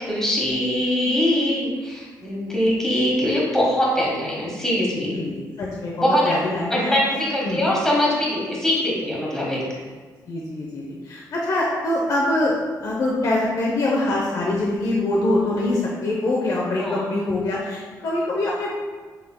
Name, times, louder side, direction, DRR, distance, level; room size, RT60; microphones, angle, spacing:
voice 1, 0.0-5.1 6.0-6.3 6.7-9.6 16.8-17.0, left 1 dB, 5° left, -5 dB, 1.4 m, -22 dB
voice 2, 1.0-1.7 5.1-5.3 5.6-6.9 7.4-7.6 10.3-18.7, left 2 dB, 55° left, -3 dB, 0.6 m, -24 dB
5.6 x 3.3 x 2.2 m, 1.4 s
cardioid pair, 90°, 7 cm